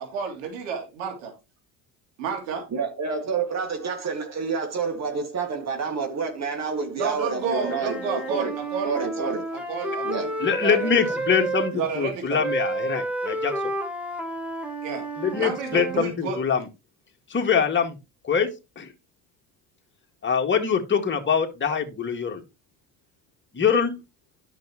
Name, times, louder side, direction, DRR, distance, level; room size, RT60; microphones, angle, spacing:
voice 1, 0.0-1.3 2.2-2.6 6.9-10.3 10.6-10.9 11.7-12.4 14.8-15.1 15.3-16.4, right 6 dB, 85° right, 2.9 m, -31 dB
voice 2, 2.7-8.6 8.8-9.4 10.0-10.3, right 5 dB, 45° right, 2.1 m, -28 dB
Wind instrument woodwind instrument, 7.3-11.7 12.4-16.1, right 2 dB, 5° right, 1.7 m, -31 dB
voice 3, 10.4-13.7 15.2-16.6 17.3-18.0 18.2-18.9 20.2-22.4 23.5-23.9, left 6 dB, 30° left, 1.9 m, -24 dB
10.5 x 6.2 x 3.0 m
supercardioid pair, 75°, 39 cm